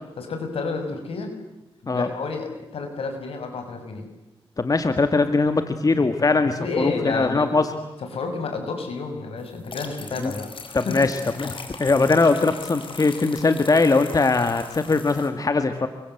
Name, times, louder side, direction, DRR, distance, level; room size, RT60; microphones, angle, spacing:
voice 1, 0.2-1.3 1.8-4.0 6.6-7.5 8.1-11.0, left 4 dB, 85° left, 5 dB, 6.4 m, -30 dB
voice 2, 4.6-7.7 10.2-10.3 10.7-15.9, left 3 dB, 40° left, 8 dB, 2.0 m, -21 dB
sound 1, 9.5-15.3, left 4 dB, 65° left, 4.9 m, -40 dB
29.0 x 24.0 x 8.1 m, 1.0 s
cardioid pair, 75°, 10 cm